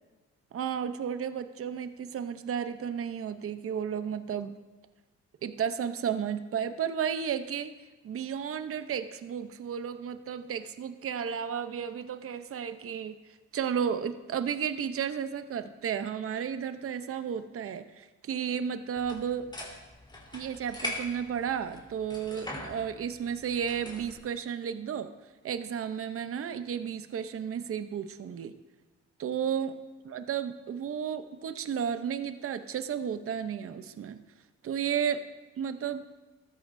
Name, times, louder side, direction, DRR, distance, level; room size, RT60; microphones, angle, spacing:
voice 1, 0.5-4.5 5.4-7.7 8.0-13.2 13.5-19.5 20.3-25.1 25.4-28.5 29.2-29.7 30.0-34.2 34.6-35.2 35.6-36.0, right 8 dB, 50° right, 10 dB, 0.8 m, -33 dB
sound 1, 19.0-24.2, left 1 dB, 15° left, 3.6 m, -42 dB
14.0 x 13.0 x 2.7 m, 1.2 s
cardioid pair, 90°, 30 cm